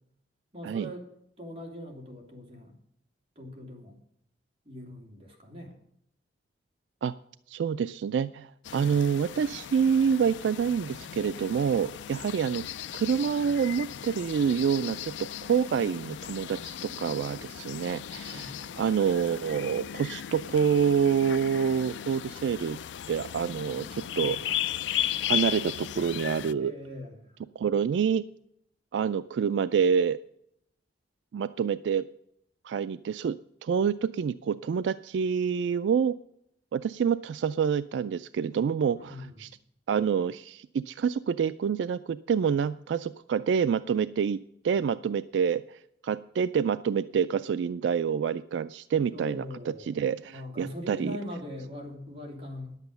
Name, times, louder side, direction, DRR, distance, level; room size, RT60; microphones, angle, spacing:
voice 1, 0.5-1.1 1.4-2.8 3.3-4.0 4.6-5.7 18.3-18.6 24.1-24.3 26.5-27.4 38.9-39.5 49.1-50.0 50.2-52.7, left 1 dB, 35° right, 0 dB, 2.8 m, -41 dB
voice 2, 7.5-12.6 12.9-18.5 18.8-22.8 23.1-24.6 25.2-26.7 27.6-28.2 28.9-30.2 31.3-32.1 32.6-36.2 36.7-39.5 39.9-44.4 44.6-51.1, right 7 dB, 75° right, 15 dB, 0.3 m, -27 dB
sound 1, 8.6-26.5, left 10 dB, 80° left, 0.4 m, -36 dB
10.5 x 8.2 x 6.7 m, 0.74 s
head